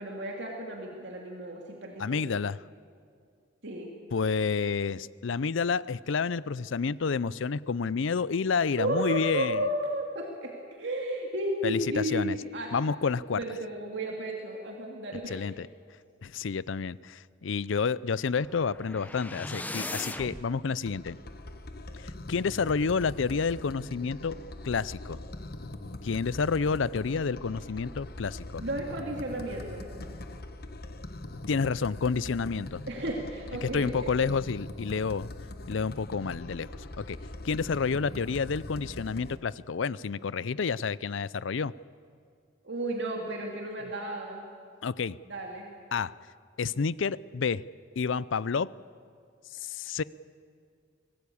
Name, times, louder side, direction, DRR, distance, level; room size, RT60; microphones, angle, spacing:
voice 1, 0.0-2.4 3.6-3.9 8.8-12.7 13.3-15.4 28.6-29.9 32.9-34.1 42.6-44.4 45.3-45.7, right 1 dB, 60° right, 0 dB, 2.6 m, -33 dB
voice 2, 2.0-2.6 4.1-9.7 11.6-12.4 12.7-13.4 15.3-15.7 16.2-21.2 22.0-24.4 24.6-25.2 26.0-28.6 31.5-32.8 33.6-35.3 35.7-37.2 37.4-41.7 44.8-45.2 45.9-46.1 46.6-47.6 48.0-48.7 49.6-50.0, left 5 dB, 70° left, 20 dB, 0.5 m, -29 dB
sound 1, 18.3-20.5, left 2 dB, 10° left, 0.8 m, -38 dB
sound 2, 20.9-39.4, left 2 dB, 50° left, 1.2 m, -42 dB
24.5 x 19.0 x 8.6 m, 2.2 s
head